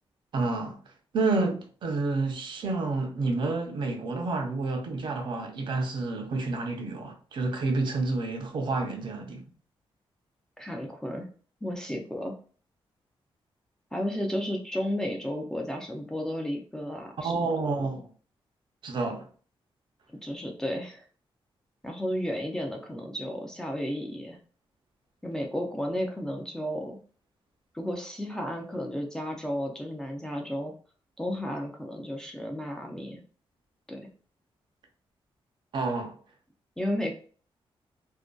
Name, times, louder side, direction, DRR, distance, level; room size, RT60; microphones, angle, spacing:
voice 1, 0.3-0.8 1.1-9.4 17.2-18.1 18.8-19.3 35.7-36.2, right 3 dB, 55° right, 0.5 m, -29 dB
voice 2, 10.6-11.3 11.6-12.4 13.9-17.5 20.2-21.0 21.8-24.4 25.2-27.0 27.7-30.7 31.2-33.2 33.9-34.1 36.8-37.1, equal, 5° left, 0.3 m, -33 dB
2.5 x 2.2 x 2.2 m
wide cardioid pair, 150°, 10 cm